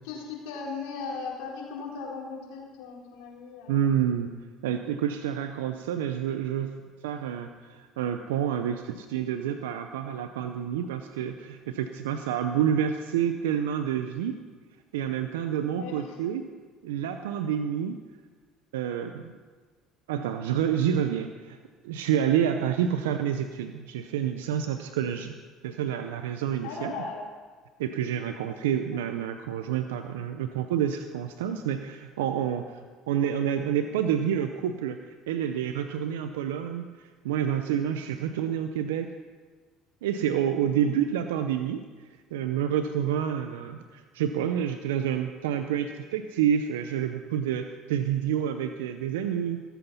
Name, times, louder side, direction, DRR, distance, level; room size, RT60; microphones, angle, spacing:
voice 1, 0.0-3.9 15.7-16.2 26.6-27.3 28.9-29.0 40.6-40.9, left 4 dB, 80° left, -4 dB, 4.4 m, -38 dB
voice 2, 3.7-4.3 4.6-6.8 7.0-14.4 14.9-16.5 16.8-18.0 18.7-19.3 20.1-21.6 21.8-25.3 25.6-26.9 27.8-35.0 35.3-39.1 40.0-41.8 42.3-49.6, right 9 dB, 90° right, 7 dB, 0.6 m, -28 dB
17.5 x 8.2 x 5.7 m, 1.4 s
supercardioid pair, 85°, 0 cm